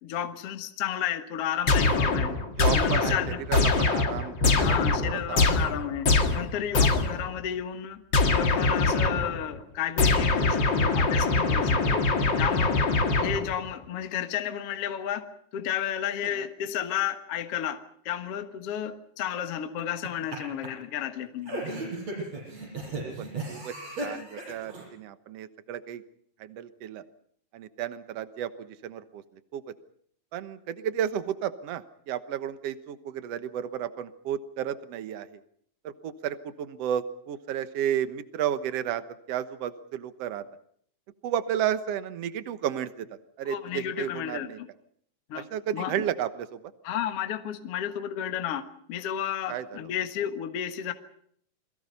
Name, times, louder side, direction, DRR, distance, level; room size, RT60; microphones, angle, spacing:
voice 1, 0.0-2.4 2.7-3.4 4.5-8.0 8.3-12.1 12.4-12.9 13.2-21.7 43.4-44.7 45.3-45.5 45.7-46.0 46.8-50.9, left 9 dB, 55° left, 7 dB, 1.9 m, -32 dB
sound 1, 1.7-7.3 8.1-9.4 10.0-13.7, left 3 dB, 35° left, 2.2 m, -24 dB
voice 2, 2.6-3.2 3.5-5.6 23.0-23.7 24.0-26.0 26.4-27.0 27.5-29.2 29.5-29.6 30.3-35.3 35.8-39.0 39.3-40.4 41.2-43.1 43.4-44.6 45.3-46.6 49.5-49.6, right 10 dB, 65° right, 11 dB, 1.6 m, -32 dB
sound 2, 19.8-20.4 20.6-20.7 21.4-24.8, right 2 dB, 45° right, 9.3 m, -35 dB
29.5 x 22.5 x 5.6 m, 0.64 s
omnidirectional pair, 4.3 m